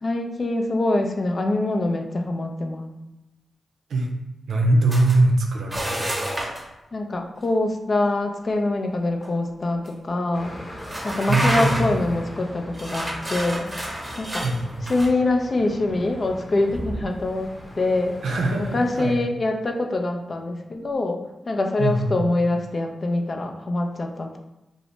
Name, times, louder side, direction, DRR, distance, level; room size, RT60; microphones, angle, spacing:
voice 1, 0.0-2.9 6.9-10.5 11.0-13.7 14.2-14.4 14.9-18.2 18.7-24.4, left 2 dB, 50° left, 4 dB, 0.4 m, -24 dB
voice 2, 4.5-6.1 11.3-11.8 14.4-14.8 18.2-19.2 21.8-22.1, right 2 dB, 80° right, 1 dB, 0.5 m, -21 dB
sound 1, 4.9-5.2 5.7-6.7 9.2-9.3 9.8-9.9 10.8-12.0 12.7-15.1, right 1 dB, 20° right, 0.8 m, -29 dB
airplane passing over an avenue, 10.3-19.1, equal, 30° left, 0.8 m, -39 dB
2.6 x 2.0 x 3.2 m, 0.95 s
supercardioid pair, 40°, 0 cm